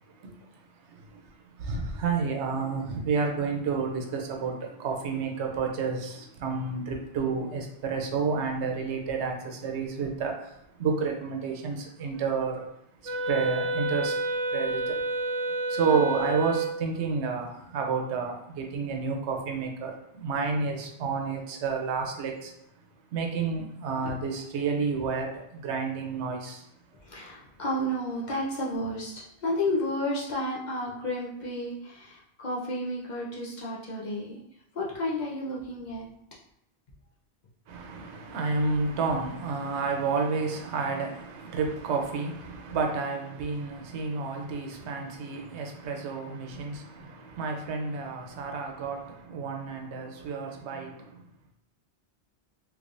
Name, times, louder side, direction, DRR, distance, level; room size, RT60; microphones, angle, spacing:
voice 1, 0.2-0.6 0.9-1.3 1.6-12.6 13.0-14.2 14.5-15.0 15.7-22.5 23.1-26.7 37.7-51.3, right 5 dB, 85° right, 0.9 m, -30 dB
Wind instrument woodwind instrument, 13.0-16.9, right 2 dB, 40° right, 0.5 m, -29 dB
voice 2, 15.9-16.3 27.0-34.4 34.7-36.1, left 1 dB, 45° left, 0.8 m, -32 dB
3.3 x 3.2 x 2.5 m
omnidirectional pair, 1.1 m